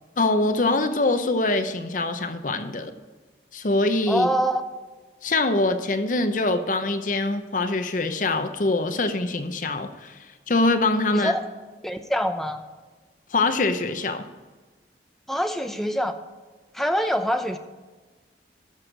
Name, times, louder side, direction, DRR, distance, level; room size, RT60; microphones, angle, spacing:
voice 1, 0.2-2.9 3.5-4.3 5.2-10.2 10.5-11.3 13.3-14.2, left 2 dB, 45° left, 8 dB, 0.7 m, -23 dB
voice 2, 4.1-4.6 11.1-11.4 11.8-12.6 15.3-16.2 16.7-17.6, equal, ahead, 6 dB, 0.6 m, -24 dB
13.5 x 6.3 x 5.2 m, 1.3 s
head